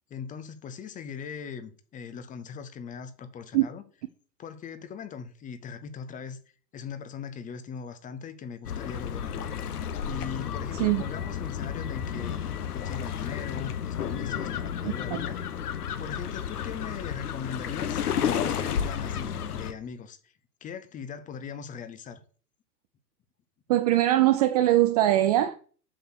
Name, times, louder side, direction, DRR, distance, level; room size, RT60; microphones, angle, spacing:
voice 1, 0.1-3.8 4.4-6.4 6.7-9.5 10.0-12.5 12.7-15.4 16.0-20.3 20.6-22.2, left 6 dB, 15° left, 0.8 m, -40 dB
sound 1, 8.6-19.7, left 8 dB, 60° left, 1.2 m, -32 dB
voice 2, 23.7-25.6, right 14 dB, 25° right, 0.5 m, -21 dB
7.6 x 6.7 x 6.4 m
figure-of-eight pair, 105°, 50 cm